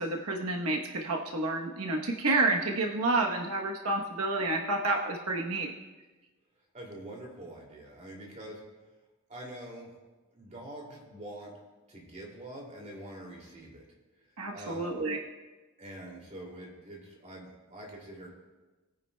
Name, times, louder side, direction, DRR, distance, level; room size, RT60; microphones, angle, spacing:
voice 1, 0.0-5.7 14.4-15.2, right 2 dB, 85° right, 1 dB, 1.0 m, -29 dB
voice 2, 6.7-8.6 9.3-9.9 10.3-11.5 11.9-13.9 14.5-15.0 15.8-18.3, right 1 dB, 30° right, -1 dB, 2.5 m, -45 dB
21.0 x 9.8 x 2.2 m, 1.2 s
head